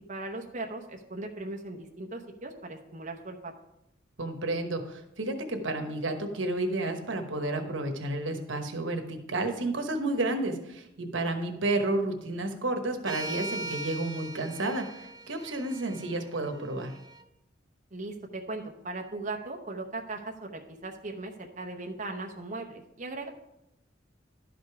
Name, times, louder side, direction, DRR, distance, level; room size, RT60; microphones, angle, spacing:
voice 1, 0.1-3.5 17.9-23.3, right 2 dB, 40° right, 2 dB, 0.8 m, -38 dB
voice 2, 4.2-16.9, right 2 dB, 85° right, 5 dB, 1.1 m, -31 dB
sound 1, 13.1-17.2, right 2 dB, 20° right, 0.4 m, -40 dB
11.5 x 5.1 x 4.8 m, 0.85 s
head